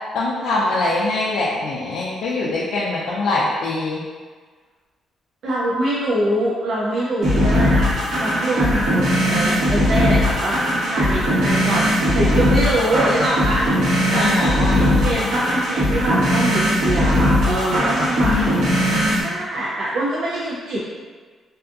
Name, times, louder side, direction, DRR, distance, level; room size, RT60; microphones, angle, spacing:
voice 1, 0.1-4.0 14.1-15.4 18.2-18.6, left 2 dB, 90° left, -6 dB, 0.3 m, -23 dB
voice 2, 5.4-14.4 14.8-18.3 19.2-20.8, right 1 dB, 55° right, -7 dB, 0.4 m, -24 dB
sound 1, 7.2-19.2, equal, 85° right, 1.1 m, -19 dB
2.6 x 2.4 x 2.3 m, 1.5 s
cardioid pair, 175°, 0 cm